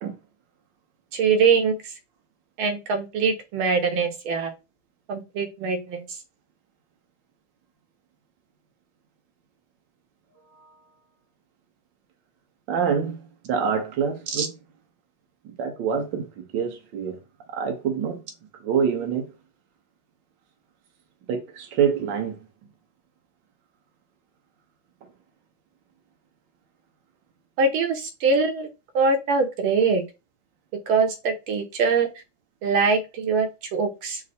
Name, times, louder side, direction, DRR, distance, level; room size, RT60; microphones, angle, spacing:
voice 1, 1.1-1.8 2.6-4.5 5.1-6.0 14.3-14.5 27.6-28.7 28.9-30.0 30.9-32.1 32.6-34.2, right 4 dB, 90° right, 1.6 m, -23 dB
voice 2, 12.7-13.2 13.4-14.5 15.6-16.3 16.5-17.2 17.5-18.2 18.6-19.3 21.3-22.3, right 7 dB, 70° right, 1.5 m, -25 dB
5.1 x 2.0 x 4.2 m
omnidirectional pair, 2.2 m